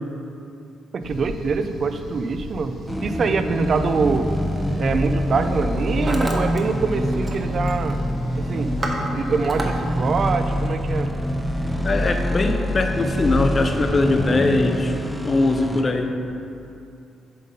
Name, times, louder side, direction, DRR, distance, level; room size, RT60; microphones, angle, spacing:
voice 1, 0.9-2.8 3.0-4.3 4.8-8.0 8.4-8.7 9.1-11.1, right 4 dB, 50° right, 9 dB, 0.4 m, -24 dB
sound 1, 1.0-10.3, right 1 dB, 80° right, 1.5 m, -38 dB
sound 2, 2.9-15.8, equal, ahead, 0.7 m, -25 dB
Hammer, 4.1-4.3 5.1-5.4 5.6-6.6 6.9-7.4 7.7-8.0 8.4-9.7, right 2 dB, 25° right, 0.9 m, -30 dB
voice 2, 11.8-14.9 15.2-16.2, left 2 dB, 35° left, 6 dB, 0.6 m, -21 dB
7.5 x 3.7 x 5.3 m, 2.7 s
cardioid pair, 90°, 0 cm